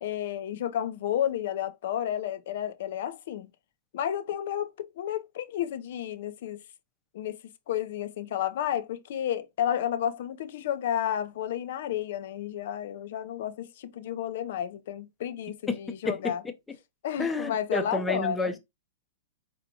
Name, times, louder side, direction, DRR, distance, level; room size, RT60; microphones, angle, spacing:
voice 1, 0.0-3.5 3.9-6.6 7.1-7.4 7.7-16.4 17.0-18.5, left 10 dB, 65° left, 0.5 m, -31 dB
voice 2, 17.2-18.6, left 2 dB, 10° left, 0.6 m, -29 dB
4.2 x 2.7 x 2.7 m
hypercardioid pair, 125°, 0 cm